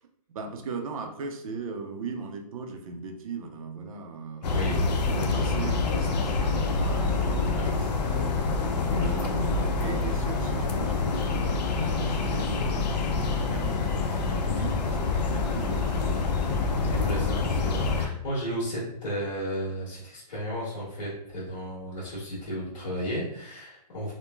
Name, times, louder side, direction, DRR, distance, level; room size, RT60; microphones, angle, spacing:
voice 1, 0.0-4.6 5.1-8.7 9.1-13.9 14.2-15.9, right 4 dB, 55° right, 4 dB, 0.5 m, -39 dB
sound 1, 4.4-18.1, left 4 dB, 80° left, 0.5 m, -26 dB
voice 2, 4.4-5.6 7.5-7.8 8.9-9.1 14.5-14.6 16.8-24.1, equal, 55° left, -8 dB, 1.3 m, -34 dB
3.0 x 2.1 x 2.2 m, 0.73 s
hypercardioid pair, 165°, 21 cm